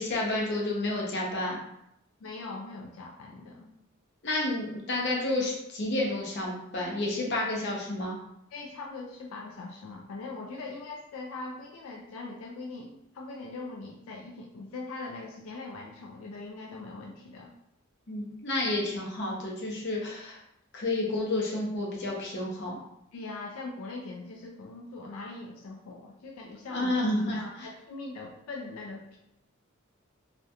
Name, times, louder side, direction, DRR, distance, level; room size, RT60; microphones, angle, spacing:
voice 1, 0.0-1.6 4.2-8.2 18.1-20.4 20.7-22.8 26.7-27.7, left 2 dB, 55° left, -2 dB, 0.7 m, -30 dB
voice 2, 2.2-3.7 8.5-17.5 23.1-27.0 27.3-29.2, left 3 dB, 90° left, 0 dB, 0.4 m, -41 dB
2.4 x 2.1 x 2.7 m, 0.79 s
head